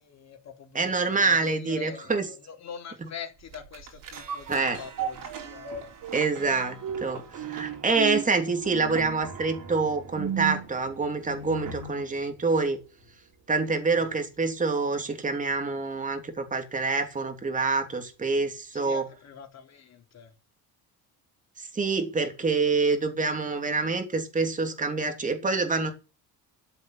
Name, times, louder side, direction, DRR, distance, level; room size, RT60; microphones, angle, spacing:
voice 1, 0.0-0.9 1.2-5.7 13.9-14.2 18.7-20.3, left 7 dB, 40° left, 3.6 m, -44 dB
voice 2, 0.7-2.3 3.0-3.1 4.5-4.8 6.1-12.8 13.5-19.0 21.6-25.9, right 4 dB, 20° right, 3.0 m, -26 dB
sound 1, 3.5-12.1 12.5-12.6, right 7 dB, 55° right, 4.3 m, -36 dB
13.0 x 8.1 x 8.4 m
cardioid pair, 160°, 40 cm